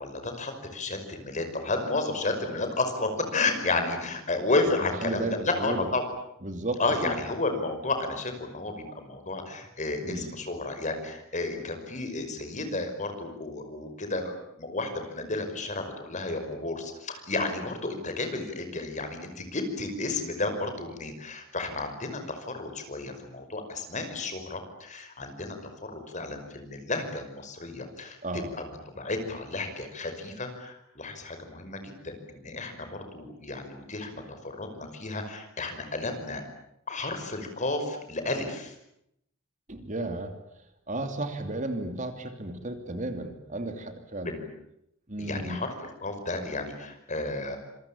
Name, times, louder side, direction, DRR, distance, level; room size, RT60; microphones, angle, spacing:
voice 1, 0.0-6.1 6.8-25.6 25.8-28.2 28.5-28.6 29.0-36.4 36.9-38.7 44.2-44.5 45.2-47.6, left 2 dB, 35° left, 7 dB, 5.5 m, -32 dB
voice 2, 4.8-5.9 6.4-7.1 10.0-10.4 28.2-28.5 39.7-40.3 40.9-44.3 45.1-45.6, right 2 dB, 40° right, 7 dB, 2.9 m, -33 dB
27.0 x 24.0 x 8.7 m, 0.78 s
head